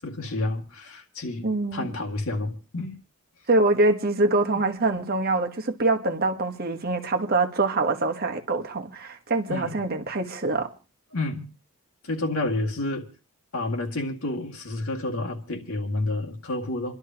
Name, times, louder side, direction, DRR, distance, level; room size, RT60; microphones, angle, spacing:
voice 1, 0.0-3.0 9.5-9.8 11.1-11.5 12.0-13.1 13.5-17.0, left 2 dB, 75° left, 2.1 m, -30 dB
voice 2, 1.4-1.9 3.5-10.7, right 2 dB, 45° right, 1.2 m, -24 dB
28.0 x 11.5 x 2.9 m
head